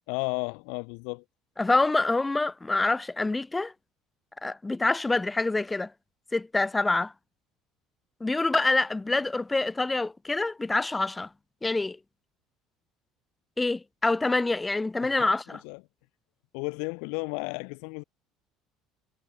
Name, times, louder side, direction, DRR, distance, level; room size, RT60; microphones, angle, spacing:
voice 1, 0.1-1.2 15.0-15.8 16.5-18.0, left 40 dB or more, 85° left, 6.1 m, -34 dB
voice 2, 1.6-3.7 4.4-5.9 6.3-7.1 8.2-11.3 11.6-12.0 13.6-15.6, left 2 dB, 10° left, 5.5 m, -26 dB
cardioid pair, 145°, 0 cm